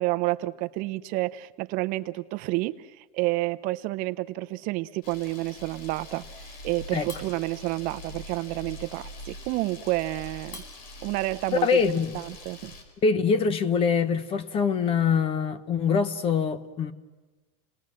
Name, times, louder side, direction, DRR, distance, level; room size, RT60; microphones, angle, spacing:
voice 1, 0.0-6.2 6.6-10.6 11.0-11.8 12.1-12.7, right 19 dB, 45° right, 0.7 m, -29 dB
Camera, 5.0-12.8, left 1 dB, 65° left, 4.7 m, -43 dB
voice 2, 11.6-12.2 13.0-16.9, left 6 dB, 30° left, 1.1 m, -24 dB
29.5 x 20.0 x 7.5 m
supercardioid pair, 150°, 20 cm